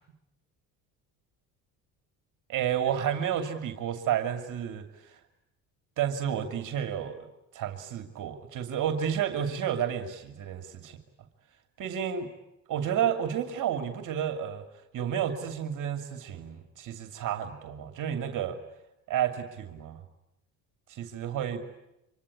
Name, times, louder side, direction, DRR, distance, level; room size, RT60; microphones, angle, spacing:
voice 1, 2.5-5.2 6.0-7.3 7.5-11.0 11.8-12.3 12.7-14.6 14.9-18.6 19.1-20.0 20.9-21.6, right 9 dB, 55° right, 7 dB, 2.7 m, -31 dB
25.5 x 24.0 x 9.8 m, 0.88 s
cardioid pair, 115°, 37 cm